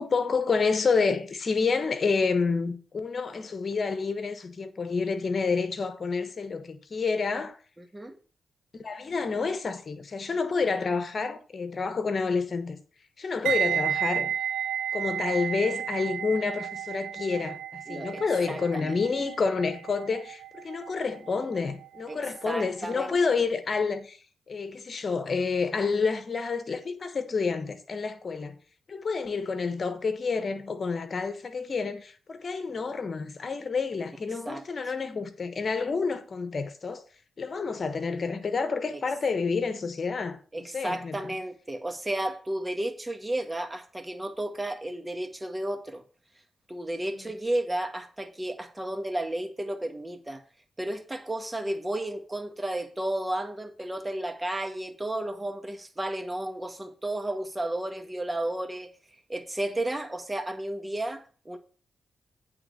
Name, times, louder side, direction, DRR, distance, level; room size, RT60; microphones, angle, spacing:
voice 1, 0.0-7.6 8.7-12.8 13.2-14.3 14.9-24.2 24.5-28.5 28.9-37.0 37.4-40.4 40.7-41.3 47.2-47.3, left 4 dB, 50° left, 1.3 m, -29 dB
voice 2, 7.8-8.2 17.9-18.9 22.1-22.2 22.4-23.2 34.4-34.6 38.9-39.0 40.5-46.0 46.7-50.4 50.8-58.9 59.3-61.6, right 1 dB, 20° right, 1.6 m, -33 dB
sound 1, 13.5-22.4 22.7-23.0, right 9 dB, 90° right, 0.4 m, -32 dB
8.8 x 3.8 x 6.7 m
supercardioid pair, 45°, 0 cm